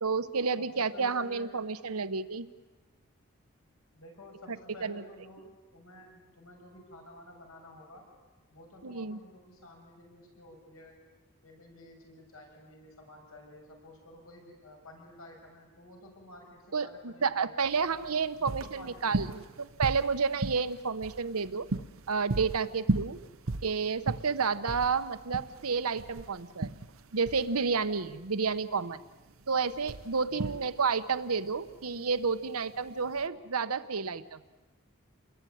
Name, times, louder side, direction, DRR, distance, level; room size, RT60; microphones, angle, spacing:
voice 1, 0.0-2.5 4.8-5.0 8.8-9.2 16.7-21.7 22.1-23.2 23.6-26.7 27.1-29.0 29.5-34.4, right 5 dB, 90° right, 12 dB, 1.1 m, -30 dB
voice 2, 0.6-1.5 3.9-8.0 8.5-11.0 11.4-17.8 18.4-19.6 30.3-30.6, left 1 dB, 75° left, 1 dB, 7.0 m, -52 dB
sound 1, 17.6-33.3, right 2 dB, 70° right, 0.8 m, -37 dB
29.0 x 22.0 x 9.4 m, 1.2 s
head